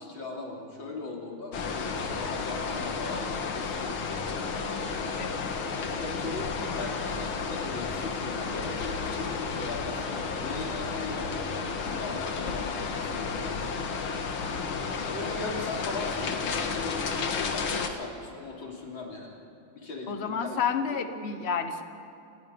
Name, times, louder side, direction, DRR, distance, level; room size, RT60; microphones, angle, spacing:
voice 1, 0.0-4.0 4.7-5.6 5.9-11.3 11.8-13.6 14.8-17.0 17.3-19.4 19.7-20.6 20.9-21.0, left 3 dB, 70° left, -1 dB, 3.9 m, -39 dB
sound 1, 1.5-17.9, left 5 dB, 90° left, 2.3 m, -32 dB
voice 2, 5.2-5.5 20.1-21.8, left 6 dB, 35° left, 8 dB, 1.3 m, -30 dB
29.5 x 21.0 x 5.3 m, 2.8 s
omnidirectional pair, 2.2 m